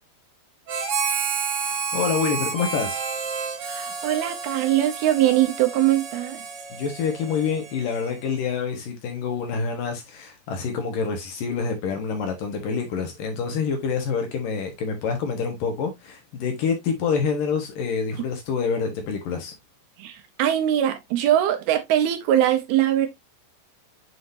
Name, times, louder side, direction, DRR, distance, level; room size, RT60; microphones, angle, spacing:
Harmonica, 0.7-8.4, right 5 dB, 50° right, 2.0 m, -30 dB
voice 1, 1.7-3.0 6.7-19.5, left 5 dB, 65° left, 2.7 m, -27 dB
voice 2, 3.6-6.4 20.0-23.1, right 12 dB, 75° right, 2.8 m, -22 dB
7.8 x 5.0 x 2.6 m
omnidirectional pair, 4.7 m